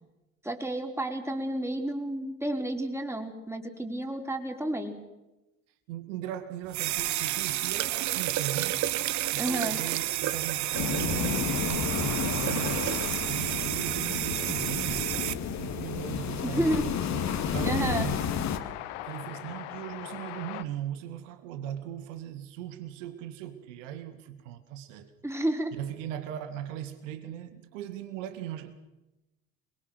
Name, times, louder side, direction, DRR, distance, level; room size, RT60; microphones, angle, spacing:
voice 1, 0.4-5.0 9.4-9.8 16.4-16.9 17.6-18.1 25.2-25.7, right 1 dB, 5° right, 4.1 m, -31 dB
voice 2, 5.9-8.8 9.3-13.0 13.3-15.1 15.6-18.2 19.0-25.1 25.7-28.7, right 11 dB, 65° right, 2.0 m, -38 dB
sound 1, 6.7-15.3, right 14 dB, 45° right, 1.1 m, -30 dB
sound 2, 10.7-18.6, left 8 dB, 45° left, 2.5 m, -31 dB
Train, 13.5-20.6, left 15 dB, 60° left, 1.4 m, -43 dB
27.0 x 22.0 x 6.3 m
figure-of-eight pair, 65°, 40 cm